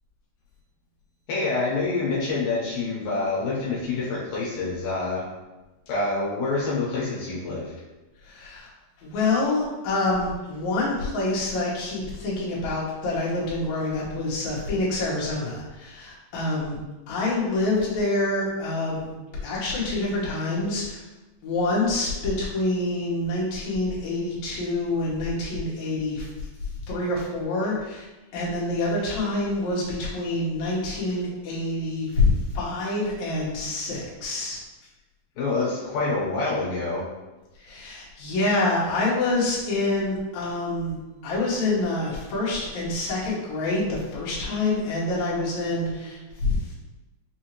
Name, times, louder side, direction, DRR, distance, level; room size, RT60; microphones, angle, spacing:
voice 1, 1.3-5.2 5.9-7.7 35.4-37.1, left 3 dB, 80° left, -6 dB, 2.5 m, -27 dB
voice 2, 8.3-8.7 9.0-16.8 17.1-19.1 19.4-21.0 21.4-26.3 26.9-28.1 28.3-32.3 32.5-34.6 37.6-41.0 41.2-46.6, left 2 dB, 65° left, -6 dB, 2.3 m, -26 dB
5.8 x 2.7 x 2.9 m, 1.1 s
omnidirectional pair, 3.9 m